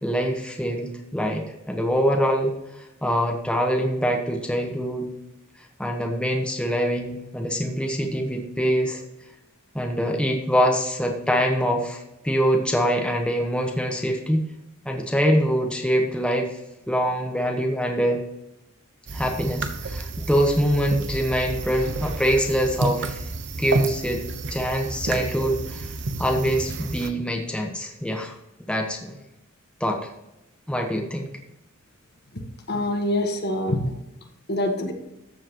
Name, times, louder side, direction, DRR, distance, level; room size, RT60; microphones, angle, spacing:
voice 1, 0.0-2.5 3.0-5.1 5.8-9.0 9.7-14.5 14.8-16.6 16.9-18.2 19.1-23.2 23.6-24.2 24.5-25.9 26.2-28.4 28.7-29.1 29.8-30.1 30.7-31.3, equal, 5° left, 2 dB, 1.1 m, -24 dB
sound 1, 19.1-27.1, right 2 dB, 55° right, 1.0 m, -30 dB
voice 2, 32.3-34.0 34.5-34.9, left 1 dB, 50° left, 4 dB, 1.5 m, -25 dB
14.0 x 7.5 x 3.0 m, 0.92 s
head